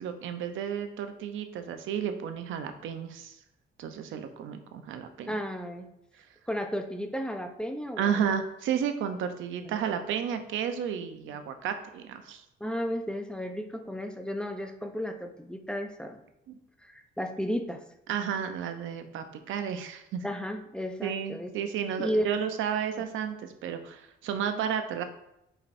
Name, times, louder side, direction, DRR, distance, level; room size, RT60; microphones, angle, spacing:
voice 1, 0.0-3.4 3.8-5.4 8.0-12.4 16.5-16.6 18.1-20.2 21.0-25.0, right 8 dB, 85° right, 8 dB, 0.7 m, -32 dB
voice 2, 5.3-5.9 6.5-8.3 9.6-9.8 12.6-16.2 16.8-17.8 20.2-21.5 22.0-22.2, equal, 5° left, 5 dB, 0.6 m, -33 dB
8.7 x 4.4 x 2.6 m, 0.85 s
cardioid pair, 90°, 20 cm